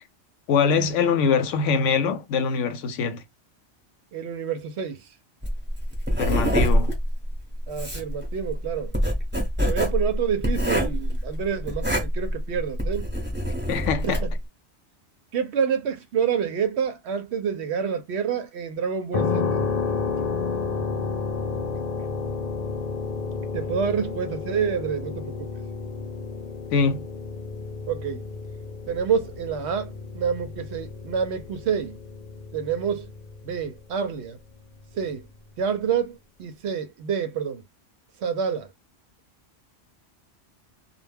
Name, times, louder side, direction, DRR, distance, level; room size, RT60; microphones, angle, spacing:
voice 1, 0.5-3.2 6.2-6.9 13.7-14.2 26.7-27.0, left 5 dB, 85° left, 0.9 m, -23 dB
voice 2, 4.1-5.0 7.7-8.9 9.7-13.1 14.0-14.3 15.3-19.5 23.5-25.5 27.9-28.2 28.9-32.0 32.5-33.1 33.4-34.4 34.9-35.2 35.6-37.6 38.2-38.7, right 7 dB, 70° right, 0.8 m, -28 dB
Writing, 5.4-14.4, equal, 10° right, 0.8 m, -25 dB
sound 1, 19.1-33.8, left 4 dB, 60° left, 0.4 m, -31 dB
2.3 x 2.1 x 3.3 m
omnidirectional pair, 1.2 m